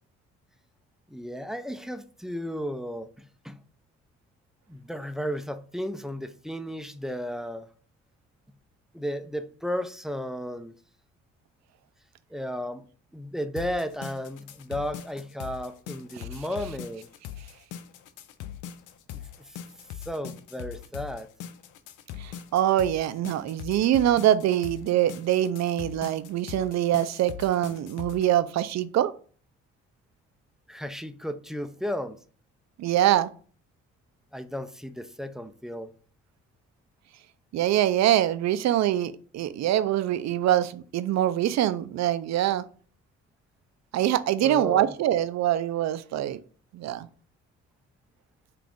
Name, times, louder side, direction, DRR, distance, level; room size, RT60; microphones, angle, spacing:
voice 1, 1.1-3.6 4.7-7.7 8.9-10.8 12.3-12.8 13.1-17.1 19.1-19.6 19.9-21.3 30.7-32.2 34.3-35.9 44.4-44.9, equal, ahead, 0.3 m, -34 dB
sound 1, 13.6-28.3, left 10 dB, 85° left, 0.5 m, -41 dB
voice 2, 22.2-29.1 32.8-33.3 37.5-42.6 43.9-46.4 46.7-47.1, right 12 dB, 60° right, 0.5 m, -24 dB
5.7 x 2.5 x 3.6 m
cardioid pair, 90°, 30 cm